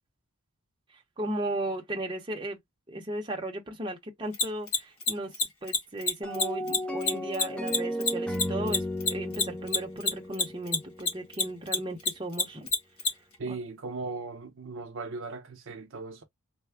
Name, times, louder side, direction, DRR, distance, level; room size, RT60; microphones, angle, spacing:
voice 1, 1.2-2.6 2.9-5.3 5.6-12.7 13.5-13.6, right 1 dB, 20° right, 0.7 m, -35 dB
Mechanisms, 4.3-11.1 11.3-13.1, left 3 dB, 75° left, 1.3 m, -25 dB
sound 1, 6.2-11.4, equal, 5° left, 0.4 m, -34 dB
voice 2, 13.4-16.2, right 3 dB, 60° right, 0.7 m, -38 dB
3.3 x 2.1 x 3.4 m
head